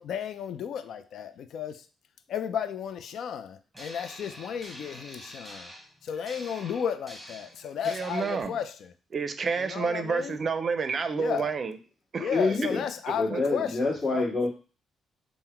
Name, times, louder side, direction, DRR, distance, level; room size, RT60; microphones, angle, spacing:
voice 1, 0.0-1.8 2.3-5.7 6.0-8.7 9.6-10.4 11.1-11.5 12.2-13.8 14.1-14.2, left 8 dB, 70° left, 0.4 m, -33 dB
sound 1, 3.7-8.4, equal, 5° right, 1.0 m, -46 dB
voice 2, 7.8-8.6 9.1-11.8 12.1-12.7 13.1-13.4, right 5 dB, 45° right, 0.5 m, -30 dB
voice 3, 12.3-12.8 13.1-14.5, left 3 dB, 35° left, 1.6 m, -27 dB
3.7 x 2.1 x 4.2 m
cardioid pair, 90°, 0 cm